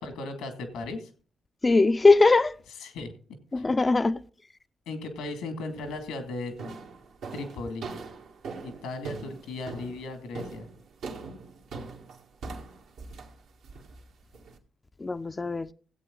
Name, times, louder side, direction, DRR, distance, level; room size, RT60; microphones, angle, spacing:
voice 1, 0.0-1.1 2.8-3.1 3.5-3.6 4.9-6.5 7.3-7.9 8.6-10.7, left 2 dB, 85° left, 2.3 m, -36 dB
voice 2, 1.6-2.6 3.5-4.2 15.0-15.7, left 3 dB, 30° left, 0.6 m, -21 dB
sound 1, 5.7-6.1 6.6-14.6, right 4 dB, 75° right, 1.8 m, -41 dB
16.0 x 8.4 x 3.9 m
hypercardioid pair, 50°, 0 cm